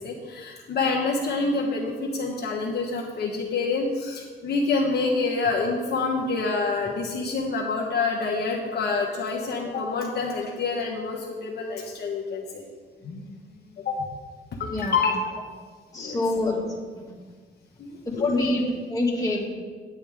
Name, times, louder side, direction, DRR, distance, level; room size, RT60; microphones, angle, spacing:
voice 1, 0.0-12.6 13.0-13.2 13.8-14.0 14.6-15.2 16.0-16.2 17.8-18.4, left 4 dB, 55° left, -1 dB, 1.3 m, -27 dB
voice 2, 14.7-15.0 15.9-16.6 18.1-19.5, left 2 dB, 15° left, -3 dB, 2.5 m, -25 dB
10.0 x 9.0 x 3.6 m, 1.5 s
cardioid pair, 90°, 20 cm